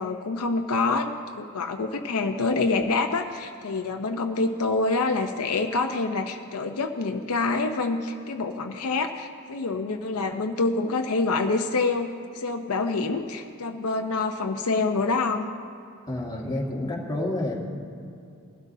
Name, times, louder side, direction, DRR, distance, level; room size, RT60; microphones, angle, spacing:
voice 1, 0.0-15.5, left 3 dB, 80° left, 5 dB, 0.7 m, -26 dB
voice 2, 16.1-17.6, left 1 dB, 20° left, -4 dB, 1.9 m, -29 dB
20.5 x 12.5 x 2.7 m, 2.5 s
head